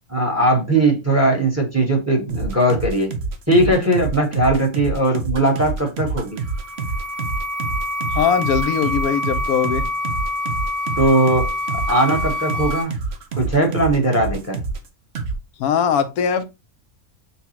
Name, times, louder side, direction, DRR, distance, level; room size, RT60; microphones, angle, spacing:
voice 1, 0.1-3.1 3.5-6.3 11.0-11.5 11.9-12.9 13.4-14.6, right 1 dB, 10° right, 1.0 m, -19 dB
sound 1, 2.3-14.9 15.2-15.4, right 4 dB, 55° right, 0.9 m, -27 dB
sound 2, 6.3-12.8, left 2 dB, 30° right, 0.9 m, -26 dB
voice 2, 8.1-9.9 15.6-16.4, left 7 dB, 85° left, 1.1 m, -20 dB
6.8 x 2.3 x 2.8 m
omnidirectional pair, 1.5 m